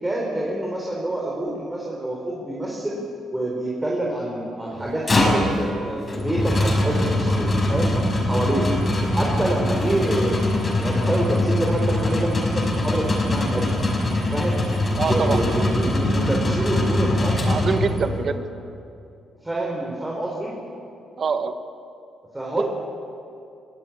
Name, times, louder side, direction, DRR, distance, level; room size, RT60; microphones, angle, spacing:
voice 1, 0.0-3.0 3.3-7.9 8.2-8.7 9.1-13.7 14.3-14.7 15.0-17.5 18.0-18.4 19.4-20.5 22.3-22.6, right 1 dB, 15° right, -2 dB, 4.3 m, -27 dB
sound 1, 4.8-18.2, left 1 dB, 30° left, 6.1 m, -22 dB
voice 2, 15.0-15.7 17.4-18.4 21.2-21.6 22.5-22.6, right 5 dB, 50° right, 9 dB, 1.5 m, -25 dB
24.0 x 16.0 x 8.8 m, 2.6 s
cardioid pair, 90°, 0 cm